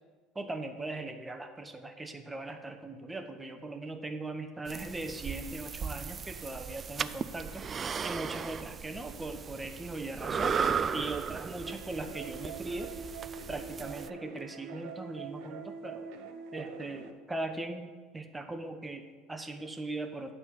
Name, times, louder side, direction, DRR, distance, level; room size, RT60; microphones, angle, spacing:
voice 1, 0.3-7.6 8.0-10.6 10.9-13.0 13.5-16.1 16.5-20.3, right 2 dB, 15° right, 6 dB, 1.0 m, -39 dB
sound 1, 4.7-14.1, right 6 dB, 35° right, 0.3 m, -36 dB
sound 2, 11.7-17.1, right 5 dB, 65° right, 0.7 m, -44 dB
9.2 x 4.2 x 7.3 m, 1.4 s
hypercardioid pair, 75°, 0 cm